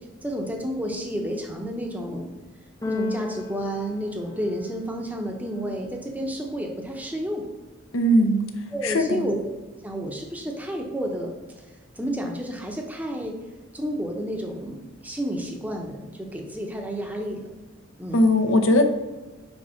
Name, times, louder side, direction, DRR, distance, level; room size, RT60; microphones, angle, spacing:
voice 1, 0.2-2.3 2.9-7.4 8.7-9.4 9.8-11.3 11.9-13.4 13.7-17.5 18.0-18.3, equal, 10° right, 1 dB, 0.7 m, -31 dB
Keyboard (musical), 2.8-4.9, left 2 dB, 15° left, 0.4 m, -33 dB
voice 2, 7.9-8.4 8.8-9.2 18.1-18.8, left 1 dB, 80° left, 6 dB, 0.8 m, -19 dB
5.2 x 4.5 x 5.7 m, 1.2 s
head